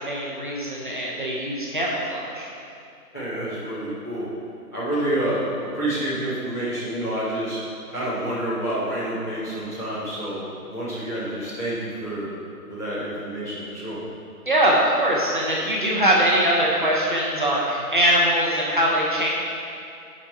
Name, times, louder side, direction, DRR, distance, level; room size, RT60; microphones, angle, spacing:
voice 1, 0.0-2.5 14.5-19.3, right 1 dB, 35° right, -5 dB, 0.8 m, -22 dB
voice 2, 3.1-4.3 4.7-7.6 7.9-12.3 12.7-14.0, right 1 dB, 10° left, -13 dB, 1.0 m, -28 dB
8.9 x 5.2 x 4.2 m, 2.5 s
figure-of-eight pair, 155°, 46 cm